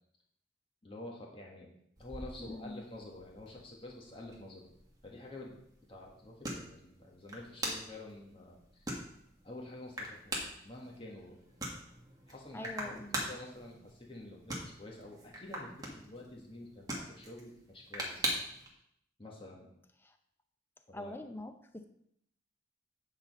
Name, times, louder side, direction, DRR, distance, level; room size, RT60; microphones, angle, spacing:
voice 1, 0.8-1.7 2.0-4.6 5.0-5.6 5.9-8.8 9.4-10.4 10.6-11.3 12.3-18.3 19.2-19.7 20.9-21.1, left 1 dB, 30° left, -2 dB, 1.6 m, -48 dB
sound 1, 2.0-18.7, right 1 dB, 20° right, 1.5 m, -43 dB
voice 2, 2.4-2.8 12.5-13.3 20.0-20.2 20.9-21.8, left 1 dB, 10° left, 7 dB, 0.6 m, -44 dB
8.7 x 4.1 x 5.3 m, 0.73 s
head